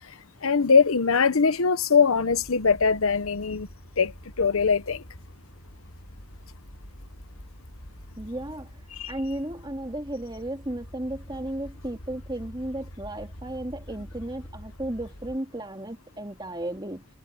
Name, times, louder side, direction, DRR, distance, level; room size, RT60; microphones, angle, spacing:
voice 1, 0.4-3.7 4.0-4.1 4.4-5.0 8.9-9.1, left 5 dB, 85° left, 0.9 m, -21 dB
sound 1, 2.1-15.4, equal, 65° left, 5.2 m, -46 dB
voice 2, 8.2-8.7 9.1-17.1, right 1 dB, 20° right, 2.7 m, -34 dB
head